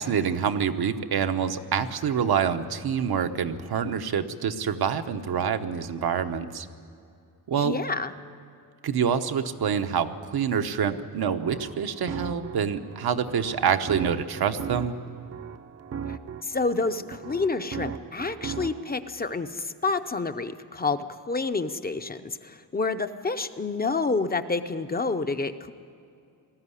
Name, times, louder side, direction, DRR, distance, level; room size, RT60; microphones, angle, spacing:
voice 1, 0.0-6.7 7.5-7.7 8.8-14.9, right 7 dB, 80° right, 7 dB, 1.1 m, -26 dB
voice 2, 7.6-8.1 16.1-25.7, left 3 dB, 25° left, 9 dB, 0.6 m, -29 dB
sound 1, 11.2-18.9, right 7 dB, 40° right, 0.6 m, -38 dB
19.5 x 14.5 x 9.8 m, 2.5 s
wide cardioid pair, 170°, 37 cm